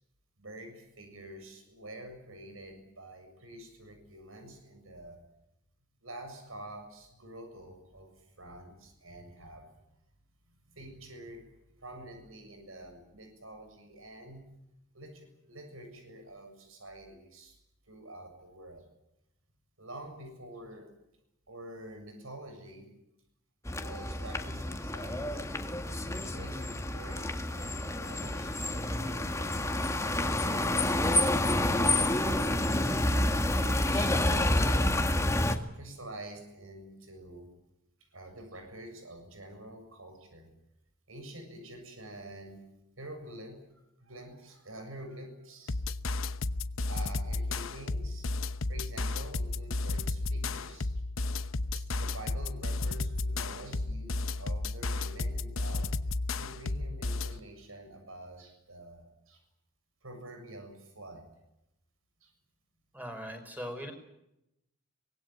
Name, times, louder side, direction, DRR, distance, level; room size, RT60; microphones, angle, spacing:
voice 1, 0.4-5.2 6.0-9.7 10.5-14.4 14.9-17.6 17.9-18.9 19.8-20.9 21.5-22.9 23.8-30.6 31.0-32.9 33.3-35.0 35.5-37.5 38.1-40.5 41.1-42.6 43.0-43.6 44.0-45.8 46.9-48.3 48.7-50.9 51.8-59.4 60.0-61.3 62.2-62.3, right 1 dB, 75° right, 5 dB, 7.2 m, -47 dB
sound 1, 23.7-35.6, left 1 dB, 15° left, 1.8 m, -29 dB
sound 2, 45.7-57.4, left 2 dB, 75° left, 1.0 m, -33 dB
voice 2, 62.9-63.9, equal, 10° right, 5 dB, 5.2 m, -40 dB
24.5 x 20.5 x 9.3 m, 0.85 s
head